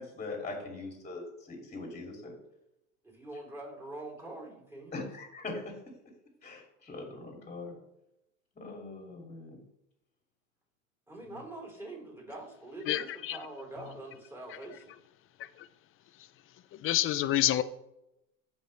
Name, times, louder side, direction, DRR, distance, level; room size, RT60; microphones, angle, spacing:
voice 1, 0.0-2.3 4.9-5.8 6.4-7.8 8.6-9.6 11.2-11.4, left 3 dB, 15° left, 1 dB, 2.6 m, -41 dB
voice 2, 3.0-4.9 11.1-15.0, right 2 dB, 5° right, -1 dB, 3.5 m, -44 dB
voice 3, 12.9-13.4 15.4-15.7 16.2-16.3 16.7-17.6, left 13 dB, 30° left, 14 dB, 0.5 m, -29 dB
15.0 x 5.4 x 3.3 m, 0.85 s
supercardioid pair, 110°, 41 cm